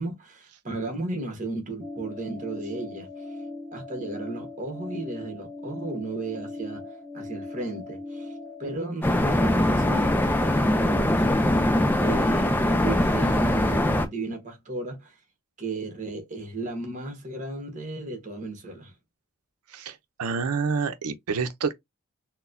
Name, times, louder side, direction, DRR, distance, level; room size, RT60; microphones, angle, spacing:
voice 1, 0.0-3.2 3.7-6.9 7.1-8.3 8.6-11.2 12.0-15.2 15.6-18.9, right 2 dB, 35° right, 1.2 m, -34 dB
sound 1, 1.8-8.8, left 2 dB, 15° right, 1.2 m, -39 dB
sound 2, 9.0-14.1, left 1 dB, 10° left, 0.4 m, -22 dB
voice 2, 19.7-21.7, right 5 dB, 90° right, 0.6 m, -28 dB
4.0 x 2.2 x 2.5 m
head